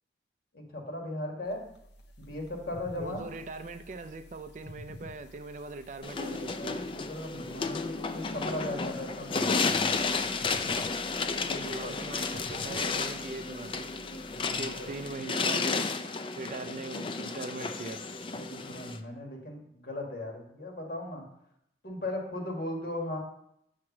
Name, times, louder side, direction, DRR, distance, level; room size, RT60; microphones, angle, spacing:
voice 1, 0.5-1.6 2.2-3.2 6.6-9.9 11.4-11.9 14.3-14.9 18.3-21.2 21.8-23.2, left 1 dB, 55° left, 1 dB, 1.5 m, -38 dB
sound 1, 1.5-15.2, left 1 dB, 75° left, 0.7 m, -51 dB
voice 2, 2.9-6.7 11.5-13.9 14.4-15.9 16.4-18.0, right 3 dB, 45° right, 10 dB, 0.4 m, -41 dB
sound 2, 6.0-19.0, left 4 dB, 30° left, 0.3 m, -32 dB
7.4 x 3.2 x 5.9 m, 0.75 s
head